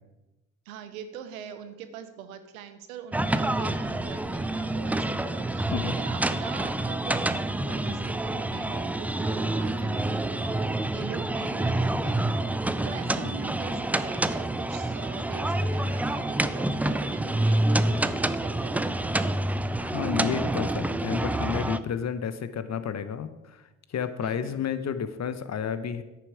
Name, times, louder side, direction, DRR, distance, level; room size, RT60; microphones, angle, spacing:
voice 1, 0.7-12.5 12.8-19.3 24.2-24.6, right 8 dB, 85° right, 10 dB, 0.8 m, -42 dB
sound 1, 3.1-21.8, right 1 dB, 5° right, 0.3 m, -27 dB
voice 2, 19.8-23.6 23.9-26.0, left 7 dB, 40° left, 12 dB, 0.8 m, -31 dB
9.4 x 6.9 x 4.9 m, 1.1 s
hypercardioid pair, 50°, 41 cm